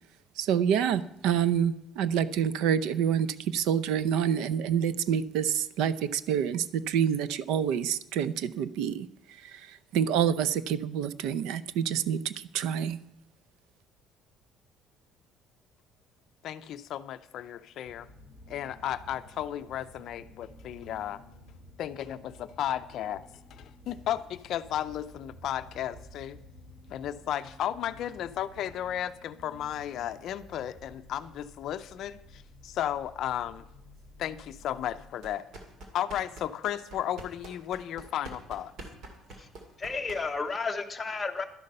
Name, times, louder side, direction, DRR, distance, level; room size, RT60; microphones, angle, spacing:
voice 1, 0.4-9.1 9.4-13.0, right 8 dB, 75° right, 15 dB, 0.6 m, -27 dB
voice 2, 16.4-18.1 18.5-21.2 21.8-26.4 26.9-33.7 34.2-35.5 35.9-38.7, left 11 dB, 45° left, 11 dB, 0.5 m, -34 dB
sound 1, 17.8-35.1, left 1 dB, 35° right, 2.7 m, -52 dB
sound 2, 35.2-40.5, right 2 dB, 50° right, 2.4 m, -47 dB
voice 3, 39.8-41.4, left 4 dB, 15° left, 5 dB, 0.9 m, -32 dB
12.0 x 10.5 x 5.4 m, 0.79 s
cardioid pair, 180°, 0 cm